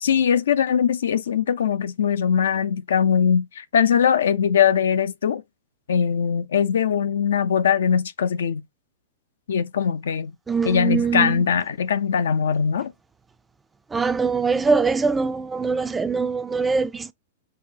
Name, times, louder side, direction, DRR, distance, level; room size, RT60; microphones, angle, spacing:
voice 1, 0.0-5.4 5.9-8.6 9.5-10.3 10.6-12.9, left 7 dB, 80° left, 0.4 m, -21 dB
voice 2, 10.5-11.4 13.9-17.1, right 4 dB, 10° right, 0.3 m, -22 dB
5.4 x 2.2 x 2.7 m
hypercardioid pair, 125°, 0 cm